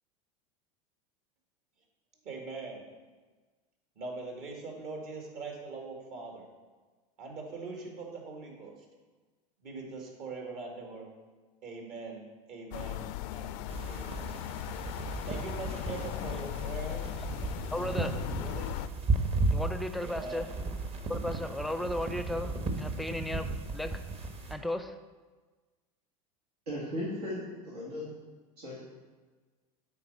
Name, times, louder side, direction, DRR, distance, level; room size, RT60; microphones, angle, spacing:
voice 1, 2.2-2.8 4.0-6.5 7.2-8.9 9.6-11.1 11.6-13.6 13.9-14.4 15.2-17.1 17.7-18.7 20.0-20.4, right 3 dB, 55° right, 0 dB, 2.1 m, -42 dB
sound 1, 12.7-18.9, left 14 dB, 60° left, 0.4 m, -38 dB
sound 2, 13.7-24.5, right 3 dB, 30° right, 1.0 m, -35 dB
voice 2, 17.7-18.1 19.5-20.5 21.1-24.0 24.5-25.0, left 1 dB, ahead, 8 dB, 0.5 m, -35 dB
voice 3, 26.7-28.1 28.6-28.8, left 1 dB, 85° right, -7 dB, 2.0 m, -36 dB
8.5 x 4.2 x 5.5 m, 1.3 s
hypercardioid pair, 95°, 20 cm